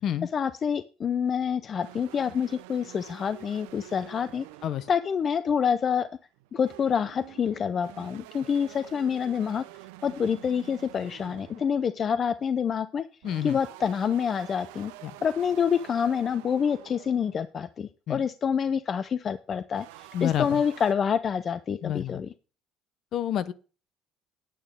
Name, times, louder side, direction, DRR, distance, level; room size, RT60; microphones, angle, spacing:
voice 1, 0.3-4.5 4.9-6.1 6.5-9.6 10.0-13.0 13.4-14.9 15.2-19.9 20.2-22.3, left 7 dB, 40° left, 13 dB, 0.5 m, -27 dB
sound 1, 1.8-5.7 6.3-12.0 13.2-17.5 19.7-20.9, right 17 dB, 90° right, 0.6 m, -48 dB
voice 2, 13.2-13.6 15.0-15.1 18.1-18.2 20.1-20.6 21.8-22.2 23.1-23.5, left 11 dB, 55° left, 15 dB, 0.9 m, -29 dB
9.1 x 8.6 x 5.1 m, 0.36 s
supercardioid pair, 95°, 0 cm